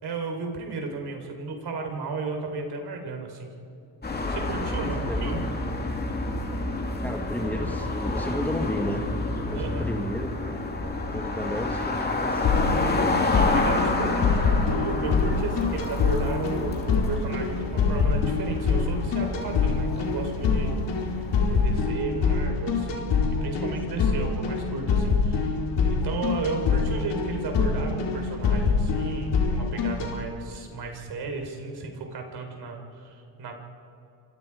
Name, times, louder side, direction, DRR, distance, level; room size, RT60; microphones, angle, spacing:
voice 1, 0.0-3.5 4.3-5.5 9.5-9.9 13.1-20.8 21.4-23.1 23.4-25.5 25.9-33.6, right 4 dB, 50° right, 3 dB, 4.4 m, -34 dB
sound 1, 4.0-21.8, left 2 dB, 20° left, 2.6 m, -29 dB
voice 2, 7.0-9.1 9.5-10.7 11.1-12.8 23.6-23.8, equal, 5° left, 2 dB, 1.7 m, -33 dB
sound 2, 12.4-30.1, left 5 dB, 60° left, 4.1 m, -25 dB
29.0 x 26.0 x 5.0 m, 2.8 s
cardioid pair, 115°, 48 cm